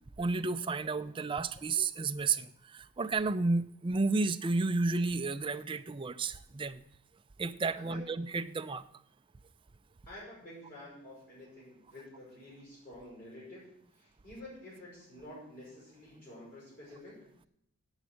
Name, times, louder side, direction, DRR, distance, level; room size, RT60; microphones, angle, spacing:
voice 1, 0.2-6.8 7.4-8.8, right 3 dB, 25° right, 10 dB, 0.4 m, -32 dB
voice 2, 10.1-13.6 13.9-17.2, left 1 dB, 40° left, -6 dB, 5.8 m, -49 dB
8.4 x 8.1 x 7.6 m, 0.75 s
head